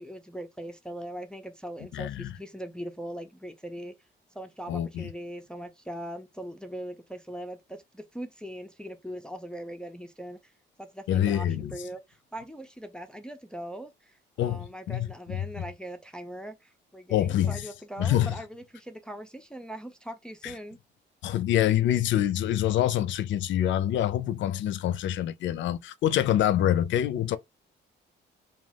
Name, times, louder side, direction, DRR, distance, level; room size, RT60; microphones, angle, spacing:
voice 1, 0.0-3.9 4.3-10.5 10.8-20.8, right 1 dB, 5° left, 0.4 m, -40 dB
voice 2, 1.9-2.3 4.7-5.1 11.1-11.7 14.4-15.4 17.1-17.6 18.0-18.4 20.4-20.5 21.2-27.4, left 11 dB, 70° left, 0.4 m, -26 dB
2.4 x 2.3 x 3.3 m
cardioid pair, 90°, 20 cm